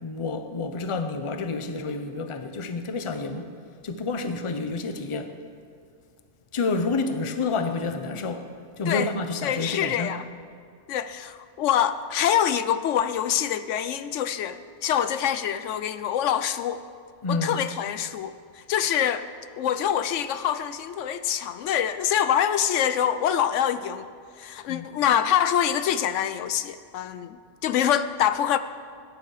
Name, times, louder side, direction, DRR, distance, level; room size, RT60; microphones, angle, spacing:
voice 1, 0.0-3.5 3.8-5.3 6.5-8.5 8.8-10.1 17.2-17.6 24.7-24.8, left 3 dB, 30° left, 8 dB, 0.7 m, -29 dB
voice 2, 9.4-10.2 10.9-16.8 17.3-19.3 19.6-24.1 24.4-28.6, left 9 dB, 80° left, 12 dB, 0.9 m, -25 dB
17.0 x 9.9 x 4.9 m, 2.2 s
omnidirectional pair, 1.3 m